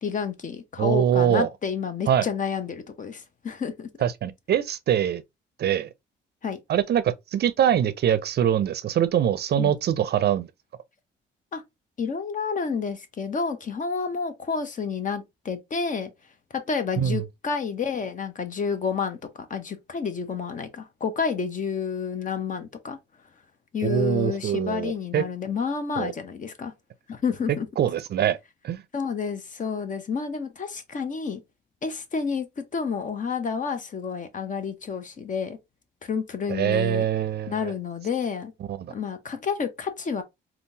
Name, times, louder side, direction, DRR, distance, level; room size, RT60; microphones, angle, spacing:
voice 1, 0.0-3.9 6.4-6.6 9.6-9.7 11.5-11.6 12.0-16.1 16.5-19.2 19.5-23.0 23.7-26.7 27.1-27.7 28.9-31.4 31.8-35.6 36.0-37.1 37.5-38.5 38.9-40.2, left 5 dB, 40° left, 0.8 m, -30 dB
voice 2, 0.8-1.5 2.1-2.3 4.0-5.2 5.6-5.9 6.7-10.5 17.0-17.2 23.8-25.2 26.0-26.1 27.8-28.4 28.6-28.8 36.5-37.7 38.7-38.9, right 10 dB, 55° right, 0.5 m, -23 dB
3.6 x 2.3 x 2.7 m
cardioid pair, 90°, 20 cm